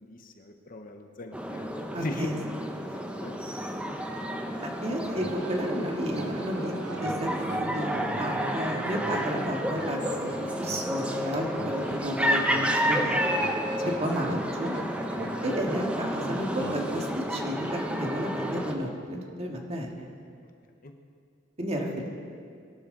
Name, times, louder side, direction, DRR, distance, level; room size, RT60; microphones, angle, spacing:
voice 1, 0.0-2.3 2.9-3.4 20.8-20.9, left 2 dB, 50° left, 4 dB, 1.2 m, -40 dB
sound 1, 1.3-18.7, equal, 5° right, 1.0 m, -31 dB
voice 2, 1.9-2.4 4.6-13.2 14.0-14.7 15.4-20.1 21.6-22.1, equal, 35° right, 0 dB, 2.0 m, -32 dB
sound 2, 5.1-17.1, right 2 dB, 60° right, 1.3 m, -40 dB
23.5 x 12.0 x 4.0 m, 2.3 s
head